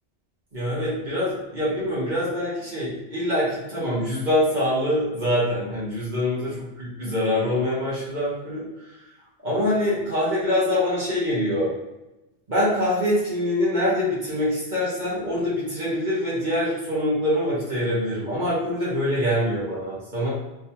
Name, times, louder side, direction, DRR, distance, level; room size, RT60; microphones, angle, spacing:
voice 1, 0.5-9.0 9.4-11.7 12.5-20.3, left 1 dB, 45° right, -8 dB, 1.4 m, -24 dB
3.5 x 3.1 x 2.8 m, 0.99 s
omnidirectional pair, 1.2 m